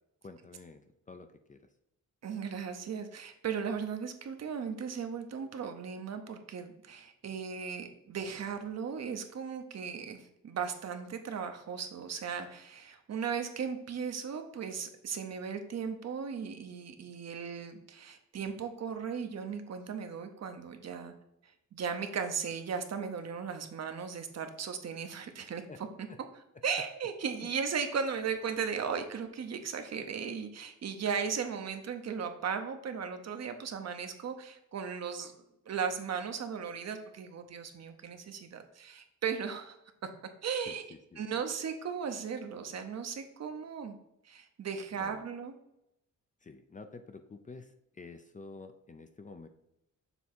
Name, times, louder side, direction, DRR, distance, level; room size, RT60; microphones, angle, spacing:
voice 1, 0.2-1.7 25.7-25.8 26.1-26.2 27.4-27.5 40.7-41.2 44.9-45.2 46.4-49.5, left 3 dB, 25° left, 8 dB, 0.4 m, -49 dB
voice 2, 2.2-21.1 21.7-25.6 26.0-26.1 26.6-35.3 35.7-39.8 40.0-40.1 40.4-40.8 41.2-44.0 44.2-45.5, right 6 dB, 55° right, 6 dB, 0.8 m, -37 dB
7.0 x 3.5 x 4.4 m, 0.83 s
wide cardioid pair, 140°, 31 cm